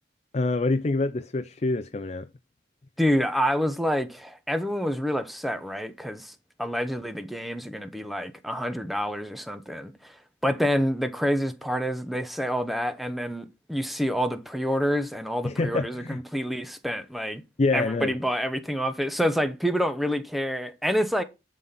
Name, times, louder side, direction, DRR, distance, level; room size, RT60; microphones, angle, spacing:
voice 1, 0.3-2.3 15.4-16.2 17.6-18.2, left 3 dB, 35° left, 0.5 m, -26 dB
voice 2, 3.0-10.2 10.4-17.4 17.7-21.2, equal, ahead, 0.8 m, -27 dB
11.0 x 4.1 x 5.8 m
head